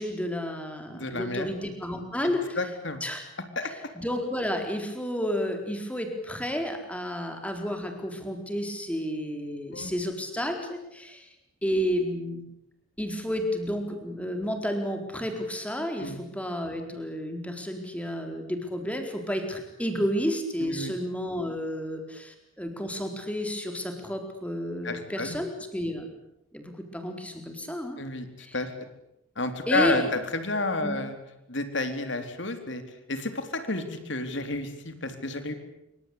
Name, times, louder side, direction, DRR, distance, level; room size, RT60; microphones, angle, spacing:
voice 1, 0.0-2.6 3.0-3.3 4.0-11.3 11.6-12.4 13.0-26.1 26.5-28.0 28.4-28.5 29.7-30.1 30.8-31.0, equal, 5° left, 5 dB, 4.2 m, -31 dB
voice 2, 0.9-1.5 2.2-3.0 3.6-3.7 9.7-9.9 16.0-16.2 20.6-20.9 24.8-25.4 28.0-28.7 29.4-31.1 31.5-32.8 33.1-35.5, left 2 dB, 60° left, 8 dB, 3.8 m, -30 dB
26.5 x 24.0 x 8.6 m, 0.82 s
head